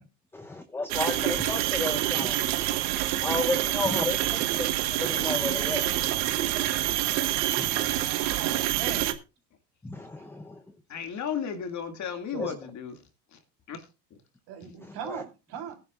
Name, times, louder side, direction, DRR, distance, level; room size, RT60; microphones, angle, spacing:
voice 1, 0.3-2.4 3.2-4.2 4.6-4.7 5.0-6.0 7.6-7.7 9.8-10.6 12.4-12.5 14.9-15.2, left 2 dB, 5° left, 7 dB, 0.8 m, -32 dB
sound 1, 0.9-9.1, right 14 dB, 70° right, 1.5 m, -27 dB
voice 2, 3.3-4.2 7.5-9.1 10.2-10.3 12.3-12.6 14.5-15.8, right 7 dB, 50° right, 3 dB, 3.9 m, -40 dB
voice 3, 10.9-12.9 13.3-13.4 13.7-13.8, left 7 dB, 35° left, 7 dB, 2.3 m, -34 dB
18.5 x 10.5 x 2.4 m, 0.28 s
hypercardioid pair, 100°, 48 cm